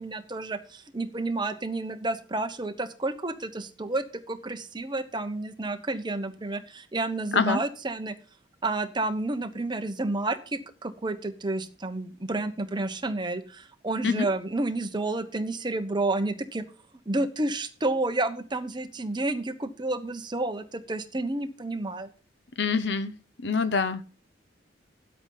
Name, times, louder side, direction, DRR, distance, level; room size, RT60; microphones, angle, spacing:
voice 1, 0.0-8.1 8.6-16.6 17.1-22.1, right 2 dB, 25° right, 1.0 m, -30 dB
voice 2, 22.6-23.1 23.4-24.0, left 5 dB, 65° left, 0.8 m, -25 dB
10.0 x 8.1 x 5.6 m
head